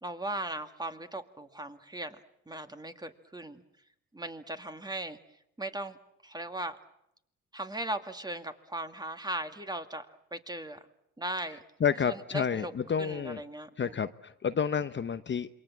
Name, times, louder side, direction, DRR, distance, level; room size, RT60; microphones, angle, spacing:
voice 1, 0.0-2.2 2.5-3.6 4.1-5.2 5.6-6.0 6.2-6.8 7.5-10.8 11.2-11.6 12.3-12.7 13.0-13.9, right 1 dB, 15° right, 8 dB, 2.2 m, -38 dB
voice 2, 11.8-13.4 13.8-15.5, left 7 dB, 40° left, 11 dB, 0.9 m, -30 dB
27.5 x 23.5 x 7.5 m, 0.77 s
cardioid pair, 90°, 30 cm